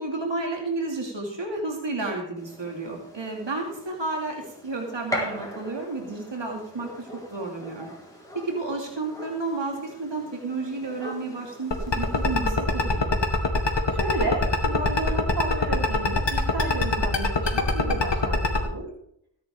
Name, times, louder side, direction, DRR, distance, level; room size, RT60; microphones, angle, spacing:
voice 1, 0.0-7.9 8.3-13.2, right 3 dB, 80° right, 0 dB, 2.7 m, -31 dB
Gunshot gunfire, 2.4-12.3, equal, 10° left, 4.7 m, -40 dB
sound 1, 11.7-18.6, left 3 dB, 75° left, 2.0 m, -22 dB
voice 2, 13.9-18.9, right 2 dB, 60° right, -1 dB, 3.6 m, -32 dB
16.5 x 10.0 x 3.8 m, 0.69 s
wide cardioid pair, 55°, 44 cm